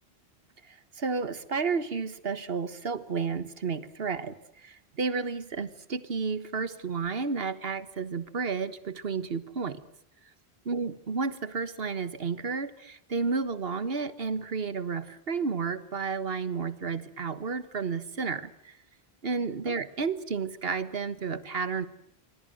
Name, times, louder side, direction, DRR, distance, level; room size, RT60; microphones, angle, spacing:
voice 1, 1.0-4.3 4.6-9.8 10.7-18.7 19.2-21.9, right 5 dB, 65° right, 14 dB, 1.6 m, -31 dB
27.0 x 25.0 x 7.9 m, 0.73 s
omnidirectional pair, 1.1 m